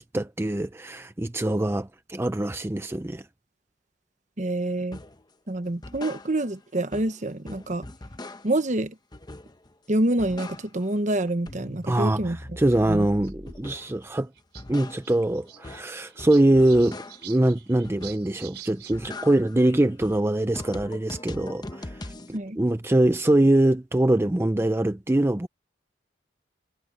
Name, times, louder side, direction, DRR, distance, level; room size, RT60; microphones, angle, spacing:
voice 1, 0.0-3.3 11.9-14.3 14.7-25.5, right 1 dB, 15° right, 0.5 m, -23 dB
voice 2, 4.4-5.0 5.5-7.8 8.4-8.9 9.9-12.4 12.9-13.1 22.3-22.6, right 1 dB, 40° right, 1.2 m, -27 dB
sound 1, 4.9-5.2 5.6-6.6 6.9-8.7 9.1-9.7 10.0-11.0 11.3-14.0 14.4-17.4 17.8-18.4 18.7-22.4, left 2 dB, 25° left, 0.9 m, -41 dB
sound 2, 9.9-10.2 11.1-11.2 11.5-11.6 12.7-12.8 13.1-13.8 14.1-14.2 14.3-14.7 14.9-18.9 19.3-20.3, right 11 dB, 65° right, 5.6 m, -47 dB
head